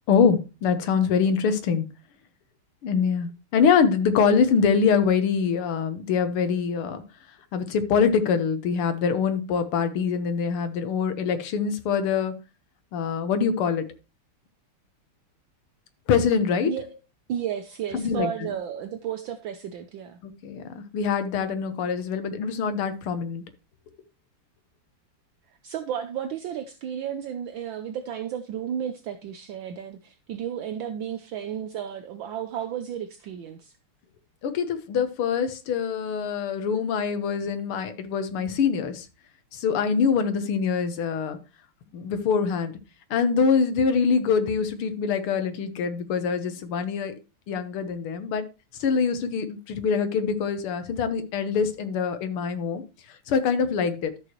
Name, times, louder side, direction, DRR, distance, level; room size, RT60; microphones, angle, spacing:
voice 1, 0.1-1.9 2.8-7.0 7.5-12.3 12.9-13.9 16.1-16.7 17.9-18.3 20.2-23.4 34.4-39.1 39.5-41.4 41.9-42.8 43.1-47.1 47.5-48.5 48.8-52.8 53.3-54.1, left 6 dB, 75° left, 2.0 m, -24 dB
voice 2, 17.3-20.2 25.6-33.7, right 9 dB, 70° right, 1.3 m, -33 dB
12.5 x 6.7 x 3.0 m
omnidirectional pair, 2.4 m